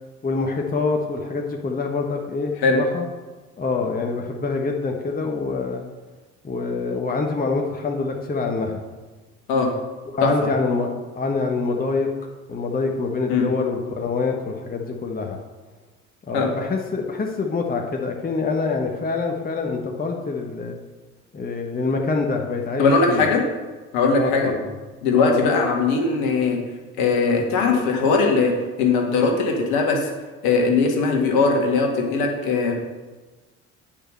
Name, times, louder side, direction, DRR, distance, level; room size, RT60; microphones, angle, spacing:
voice 1, 0.2-3.1 3.6-5.8 6.4-8.8 10.1-12.1 12.5-15.4 16.3-20.7 21.3-23.3 24.1-24.7 25.1-25.4 27.7-27.9, left 4 dB, 20° left, 2 dB, 1.2 m, -25 dB
voice 2, 22.8-23.4 23.9-24.5 25.0-26.6 27.0-28.5 28.8-30.1 30.4-32.7, left 4 dB, 60° left, 1 dB, 2.0 m, -19 dB
8.8 x 5.1 x 7.6 m, 1.3 s
figure-of-eight pair, 55°, 42 cm